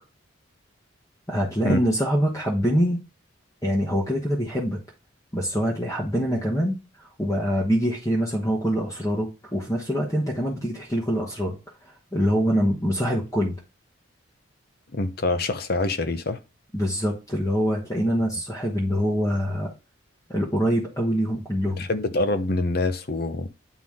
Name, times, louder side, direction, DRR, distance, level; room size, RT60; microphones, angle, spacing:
voice 1, 1.3-3.0 3.6-4.8 5.3-11.6 12.1-13.6 16.7-19.7 20.3-21.8, equal, 15° left, 1.2 m, -24 dB
voice 2, 14.9-16.4 21.8-23.5, left 2 dB, 50° left, 0.7 m, -25 dB
9.1 x 4.0 x 3.6 m
head